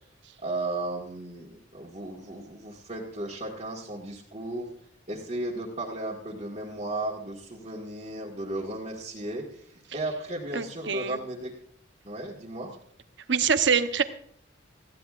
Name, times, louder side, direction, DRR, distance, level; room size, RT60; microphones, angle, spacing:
voice 1, 0.4-4.7 5.1-9.7 9.9-11.5 12.0-12.7, right 2 dB, 35° right, -5 dB, 1.7 m, -35 dB
voice 2, 10.5-11.2 13.3-14.0, right 6 dB, 65° right, 9 dB, 0.9 m, -24 dB
19.0 x 14.5 x 2.5 m, 0.64 s
head